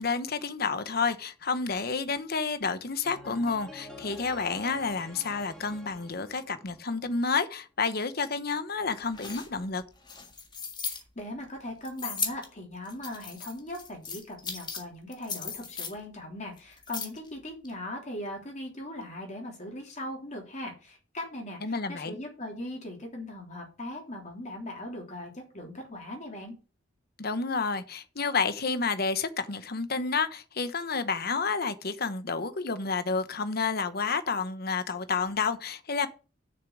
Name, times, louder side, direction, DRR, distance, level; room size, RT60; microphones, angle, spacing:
voice 1, 0.0-9.8 21.6-22.2 27.2-36.1, left 4 dB, 55° left, 1.1 m, -30 dB
sound 1, 3.0-7.1, left 1 dB, 5° left, 2.0 m, -48 dB
sound 2, 8.9-11.0 11.8-12.5 12.9-14.8 15.1-15.9 16.6-17.3 17.7-17.8, left 5 dB, 25° left, 1.7 m, -36 dB
voice 2, 10.8-26.5, left 1 dB, 40° left, 3.3 m, -39 dB
7.0 x 6.6 x 7.9 m
head